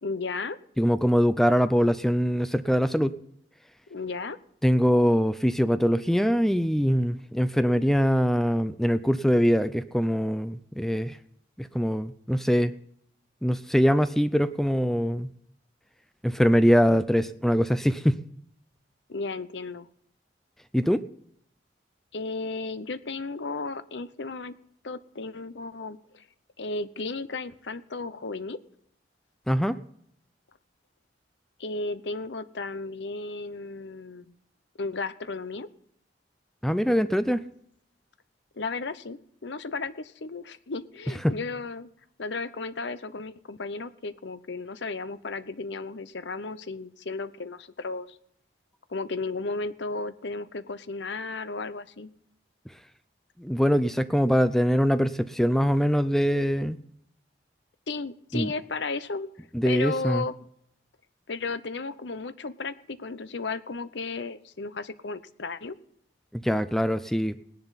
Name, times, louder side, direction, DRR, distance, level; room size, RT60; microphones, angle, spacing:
voice 1, 0.0-0.6 3.9-4.4 19.1-19.9 22.1-24.5 24.8-26.2 26.6-28.6 31.6-34.3 34.8-35.7 38.6-41.9 42.2-48.2 48.9-52.1 57.9-60.3 61.3-65.7, left 3 dB, 70° left, 0.8 m, -34 dB
voice 2, 0.8-3.2 4.6-11.2 11.6-12.7 13.4-15.3 16.2-18.2 20.7-21.0 29.5-29.8 36.6-37.4 41.2-41.4 53.4-56.8 58.3-58.5 59.5-60.2 66.3-67.4, equal, ahead, 0.4 m, -23 dB
19.0 x 10.5 x 4.1 m
head